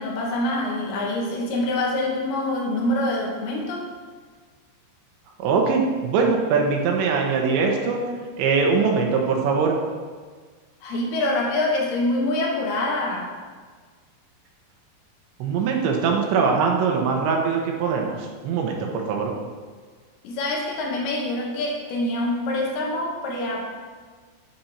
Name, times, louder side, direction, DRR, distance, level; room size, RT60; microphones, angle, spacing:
voice 1, 0.0-3.9 10.8-13.3 20.2-23.6, left 1 dB, 70° left, 0 dB, 2.8 m, -25 dB
voice 2, 5.4-8.0 8.4-9.8 15.4-19.3, right 5 dB, 80° right, 1 dB, 3.4 m, -22 dB
9.6 x 9.0 x 4.4 m, 1.5 s
omnidirectional pair, 5.4 m